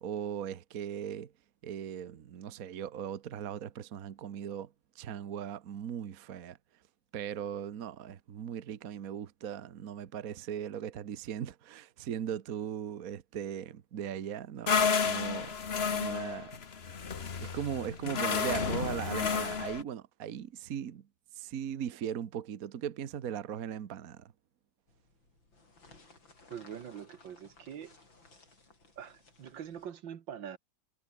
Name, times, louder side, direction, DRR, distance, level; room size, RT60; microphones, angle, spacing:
voice 1, 0.0-1.3 1.6-6.6 7.1-15.5 15.9-16.5 17.4-21.0 21.3-24.3, right 9 dB, 55° right, 1.4 m, -38 dB
sound 1, 14.7-19.8, left 6 dB, 35° left, 1.4 m, -31 dB
sound 2, 24.9-29.9, left 3 dB, 85° left, 6.4 m, -60 dB
voice 2, 26.5-28.0 29.0-30.6, right 8 dB, 75° right, 2.1 m, -44 dB
omnidirectional pair, 2.0 m